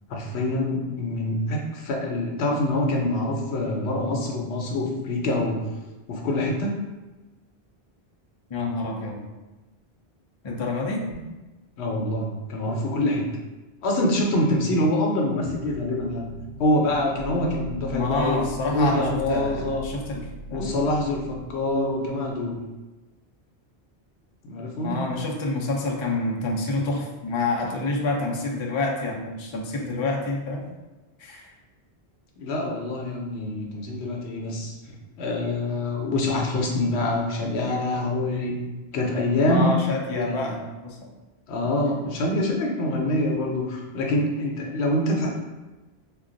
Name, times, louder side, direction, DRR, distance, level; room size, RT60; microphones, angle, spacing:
voice 1, 0.1-5.6 6.1-6.7 11.1-11.2 11.8-13.2 13.8-16.3 16.6-18.4 18.7-19.8 20.5-22.6 24.4-25.0 32.4-34.7 35.2-38.6 38.9-39.7 40.1-40.5 41.5-45.3, left 1 dB, 90° left, 1 dB, 0.9 m, -25 dB
voice 2, 8.5-9.2 10.4-11.0 17.9-20.2 20.5-20.7 24.8-30.7 31.2-31.5 39.5-40.6 40.8-41.1, left 2 dB, 50° left, -1 dB, 0.3 m, -28 dB
sound 1, 15.4-22.5, right 1 dB, 85° right, 0.9 m, -39 dB
2.3 x 2.2 x 3.7 m, 1.2 s
omnidirectional pair, 1.1 m